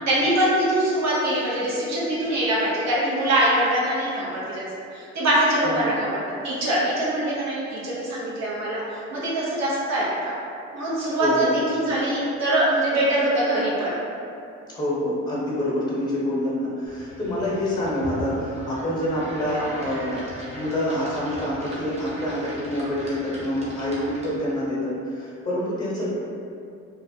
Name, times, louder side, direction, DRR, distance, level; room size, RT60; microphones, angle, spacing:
voice 1, 0.1-4.6 4.9-8.8 9.1-10.3 10.7-13.9, right 1 dB, 60° right, -7 dB, 0.8 m, -23 dB
voice 2, 11.2-11.5 14.7-20.2 20.5-26.1, left 1 dB, 15° left, -7 dB, 0.8 m, -27 dB
sound 1, 16.9-24.6, right 1 dB, 20° right, 0.7 m, -39 dB
2.3 x 2.0 x 2.7 m, 2.5 s
cardioid pair, 90°, 30 cm